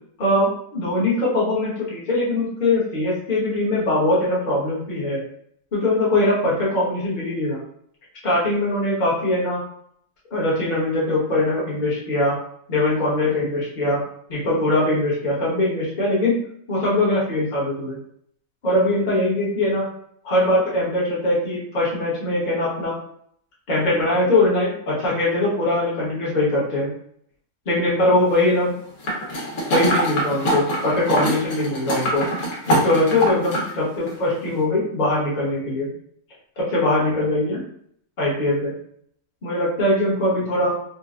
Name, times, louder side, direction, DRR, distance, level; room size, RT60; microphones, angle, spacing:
voice 1, 0.2-5.2 5.7-7.6 8.2-9.6 10.3-12.3 12.7-14.0 14.3-16.4 16.7-18.0 18.6-19.8 20.2-23.0 23.7-26.9 27.7-28.7 29.7-32.2 32.7-35.9 36.6-37.6 38.2-38.7 39.4-40.8, left 1 dB, 35° left, -7 dB, 1.0 m, -21 dB
sound 1, 29.0-33.7 34.1-34.2, right 1 dB, 70° left, 1.5 m, -24 dB
4.1 x 2.1 x 2.4 m, 0.66 s
omnidirectional pair, 1.6 m